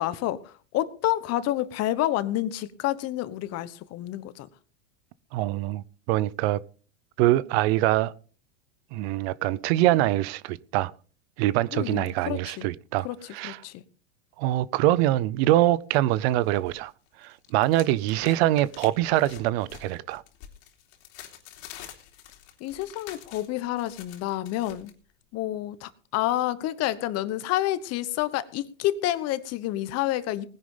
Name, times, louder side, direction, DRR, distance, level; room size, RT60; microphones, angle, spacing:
voice 1, 0.0-4.5 11.7-12.7 13.0-13.8 22.6-24.9 25.3-30.5, left 14 dB, 40° left, 1.2 m, -29 dB
voice 2, 5.3-6.6 7.2-8.1 8.9-10.9 11.4-13.1 13.3-13.6 14.4-16.9 17.2-20.2, right 15 dB, 55° right, 0.8 m, -24 dB
sound 1, 15.9-16.8 17.1-24.9, left 11 dB, 60° left, 3.1 m, -47 dB
19.5 x 10.5 x 3.9 m
supercardioid pair, 130°, 37 cm